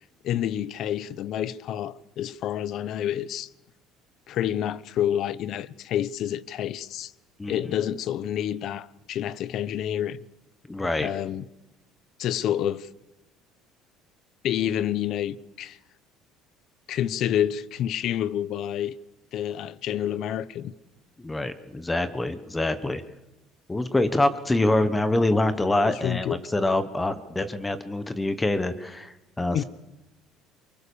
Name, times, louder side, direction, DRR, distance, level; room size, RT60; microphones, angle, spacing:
voice 1, 0.2-3.5 4.3-7.1 7.5-10.2 11.0-11.4 12.2-12.9 14.4-15.8 16.9-18.9 19.3-20.7 25.7-26.4 29.5-29.6, left 10 dB, 45° left, 0.9 m, -28 dB
voice 2, 7.4-7.8 10.7-11.1 21.2-23.0 23.7-29.6, left 2 dB, 10° left, 1.1 m, -25 dB
28.0 x 24.5 x 7.0 m
cardioid pair, 170°, 0 cm